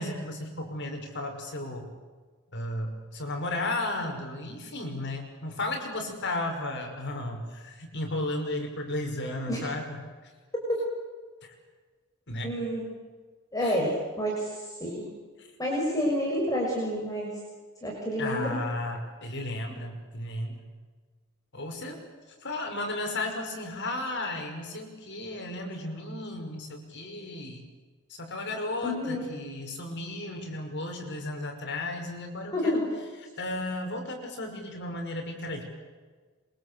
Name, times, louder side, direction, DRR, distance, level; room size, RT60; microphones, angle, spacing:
voice 1, 0.0-1.9 2.5-10.0 12.3-12.5 13.6-13.8 15.4-15.5 18.2-20.6 21.5-22.0 22.4-27.6 28.1-32.9 33.4-35.6, left 2 dB, 55° left, 3 dB, 5.8 m, -34 dB
voice 2, 12.4-12.8 13.5-15.1 15.6-17.3 17.8-18.6 28.8-29.3 32.5-32.9, equal, 15° left, -2 dB, 6.5 m, -29 dB
27.0 x 24.5 x 8.3 m, 1.4 s
head